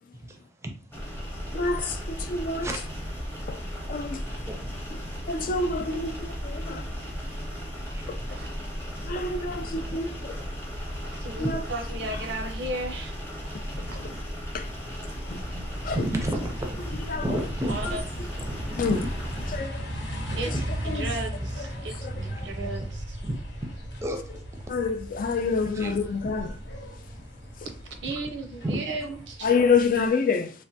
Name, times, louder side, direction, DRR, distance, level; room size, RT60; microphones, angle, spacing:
voice 1, 0.1-0.7 2.6-3.0 3.5-3.7 4.2-5.4 6.5-6.9 7.8-8.4 9.2-9.3 9.5-10.4 10.7-11.1 11.4-11.5 13.7-14.2 15.5-18.0 18.4-19.6 20.5-20.7 22.3-22.5 23.2-23.7 24.0-24.2 24.5-24.7 25.7-26.6 28.6-28.9, right 1 dB, 15° right, 0.5 m, -35 dB
sound 1, 0.9-19.6, equal, 15° left, 0.8 m, -35 dB
voice 2, 1.5-2.7 3.5-3.6 3.9-4.2 5.3-6.8 9.0-10.4 11.4-11.6 14.5-14.7 15.3-15.4 15.8-16.0 17.1-17.2 18.8-19.0 19.5-19.9 20.9-21.1 22.0-22.1 24.7-26.5 29.4-30.5, left 4 dB, 50° left, 0.4 m, -27 dB
voice 3, 8.3-8.7 10.9-14.1 17.6-18.0 20.4-23.2 27.9-29.5, right 2 dB, 80° right, 0.6 m, -36 dB
sound 2, 15.1-30.1, right 1 dB, 80° left, 0.9 m, -37 dB
3.2 x 2.1 x 2.7 m
head